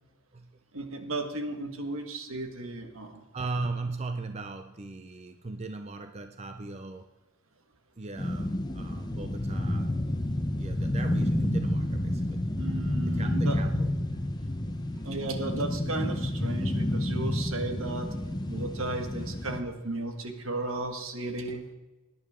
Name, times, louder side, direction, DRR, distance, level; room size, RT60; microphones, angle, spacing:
voice 1, 0.7-3.2 12.6-13.6 15.0-18.1 18.5-21.6, right 2 dB, 70° right, 1.7 m, -34 dB
voice 2, 3.3-7.1 8.0-9.9 10.5-12.4 13.0-14.0 14.4-15.1, right 3 dB, 30° right, 0.5 m, -38 dB
sound 1, 8.2-19.6, left 1 dB, 20° left, 0.7 m, -30 dB
18.5 x 10.5 x 3.7 m
head